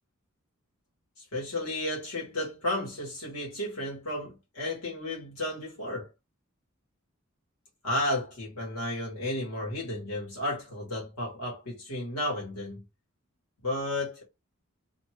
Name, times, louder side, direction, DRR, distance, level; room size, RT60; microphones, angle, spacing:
voice 1, 1.2-6.1 7.8-12.8 13.6-14.2, left 1 dB, 80° left, 1.5 m, -33 dB
2.6 x 2.6 x 3.0 m
head